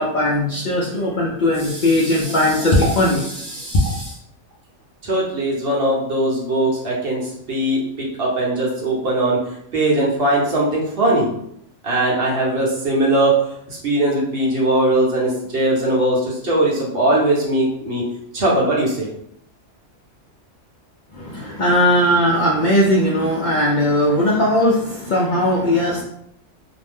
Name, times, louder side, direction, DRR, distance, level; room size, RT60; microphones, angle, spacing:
voice 1, 0.0-4.1 21.1-26.0, left 1 dB, 60° left, -4 dB, 0.5 m, -18 dB
voice 2, 5.0-9.4 9.7-11.3 11.8-13.4 13.7-18.0 18.3-19.1, right 1 dB, 55° right, -4 dB, 0.9 m, -20 dB
2.5 x 2.1 x 3.4 m, 0.73 s
omnidirectional pair, 1.3 m